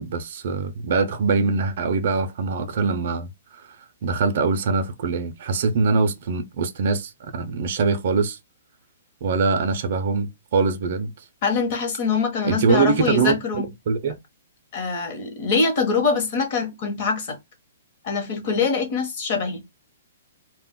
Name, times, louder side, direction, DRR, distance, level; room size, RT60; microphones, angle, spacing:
voice 1, 0.0-3.3 3.6-3.7 4.0-8.4 9.2-11.1 12.4-13.4 13.9-14.2, right 4 dB, 45° right, 0.4 m, -23 dB
voice 2, 11.4-13.7 14.7-17.4 18.0-19.6, left 5 dB, 35° left, 0.8 m, -24 dB
2.2 x 2.0 x 3.5 m
hypercardioid pair, 170°, 0 cm